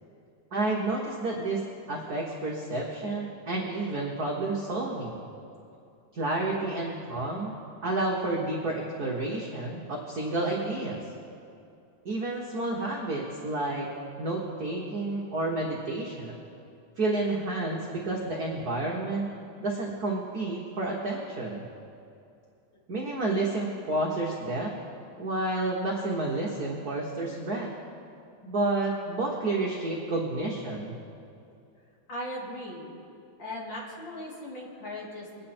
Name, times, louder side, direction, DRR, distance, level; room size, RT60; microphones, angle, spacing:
voice 1, 0.5-1.6 1.9-5.2 6.1-7.6 7.8-11.0 12.0-13.9 14.2-16.3 17.0-19.3 19.6-21.6 22.9-24.7 25.2-27.7 28.4-31.0, right 2 dB, 50° right, -3 dB, 1.2 m, -30 dB
voice 2, 32.1-33.0 33.4-35.5, left 1 dB, 40° left, -4 dB, 3.0 m, -38 dB
22.5 x 8.8 x 4.4 m, 2.6 s
omnidirectional pair, 3.3 m